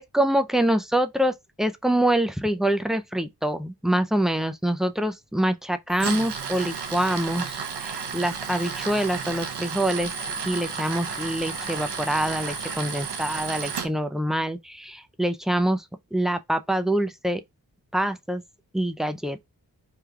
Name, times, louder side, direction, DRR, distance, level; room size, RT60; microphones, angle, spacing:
voice 1, 0.0-10.1 10.4-15.8 16.1-17.4 17.9-18.4 18.7-19.4, right 1 dB, ahead, 0.4 m, -25 dB
Tools, 5.9-13.9, right 5 dB, 85° right, 0.8 m, -32 dB
3.3 x 2.2 x 3.5 m
cardioid pair, 50°, 40 cm